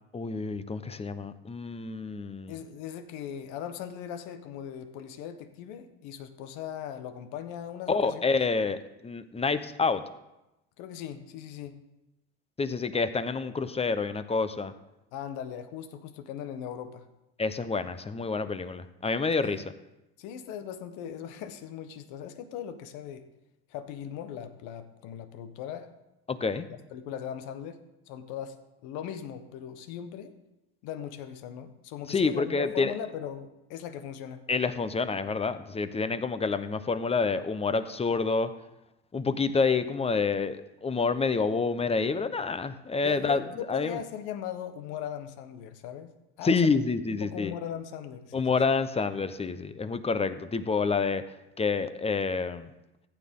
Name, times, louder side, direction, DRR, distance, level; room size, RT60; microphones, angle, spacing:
voice 1, 0.1-2.6 7.9-10.0 12.6-14.7 17.4-19.6 26.3-26.7 32.1-32.9 34.5-38.5 39.1-44.0 46.4-47.5 48.3-51.2 51.6-52.7, left 4 dB, 20° left, 11 dB, 0.9 m, -28 dB
voice 2, 2.5-8.2 10.8-11.8 15.1-17.0 19.3-19.6 20.2-23.3 23.7-25.9 26.7-27.8 28.1-28.6 28.8-30.3 30.8-34.4 43.0-46.1 46.4-46.6 47.1-48.6, left 9 dB, 70° left, 9 dB, 1.3 m, -39 dB
15.0 x 9.4 x 3.7 m, 0.95 s
hypercardioid pair, 85°, 32 cm